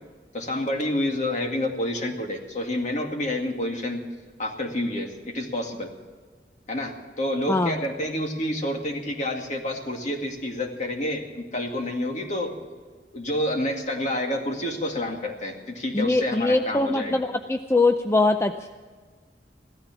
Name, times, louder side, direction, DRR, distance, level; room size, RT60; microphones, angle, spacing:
voice 1, 0.3-4.0 4.4-5.9 6.7-12.5 13.1-17.2, left 1 dB, 45° left, 3 dB, 2.2 m, -28 dB
voice 2, 15.9-18.7, left 2 dB, 15° left, 7 dB, 0.5 m, -22 dB
16.0 x 13.5 x 6.0 m, 1.5 s
head